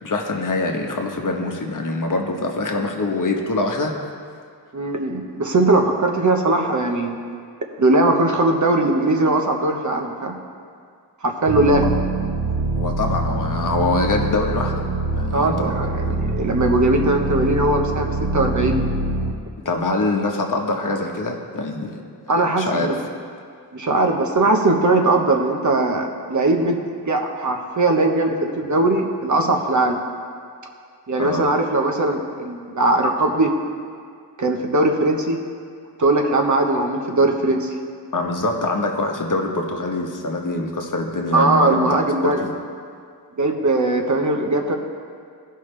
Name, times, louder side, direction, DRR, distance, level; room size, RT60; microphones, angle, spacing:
voice 1, 0.0-3.9 12.7-14.8 15.1-16.2 19.6-22.0 22.3-22.9 31.2-31.5 38.1-42.5, left 2 dB, 50° left, 2 dB, 1.1 m, -24 dB
voice 2, 4.7-7.2 7.8-10.3 11.2-11.8 15.3-18.1 18.3-18.8 22.3-23.0 23.7-30.0 31.1-33.5 34.4-35.4 36.0-37.7 41.3-42.4 43.4-44.8, right 2 dB, 45° right, 3 dB, 1.1 m, -19 dB
sound 1, 11.5-19.3, right 2 dB, 65° right, 0.8 m, -24 dB
16.5 x 5.7 x 3.3 m, 2.2 s
wide cardioid pair, 90°, 42 cm